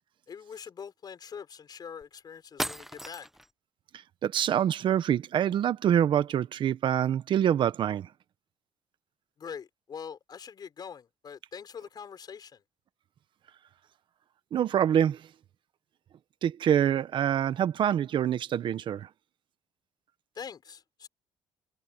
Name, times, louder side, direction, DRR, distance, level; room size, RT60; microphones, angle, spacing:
voice 1, 0.3-3.3 9.4-12.6 20.3-21.1, left 7 dB, 45° left, 6.4 m, -43 dB
sound 1, 2.0-2.1 2.6-3.5, equal, 5° right, 0.9 m, -35 dB
voice 2, 3.9-8.1 14.5-15.3 16.4-19.1, right 10 dB, 60° right, 1.3 m, -26 dB
cardioid pair, 85°, 9 cm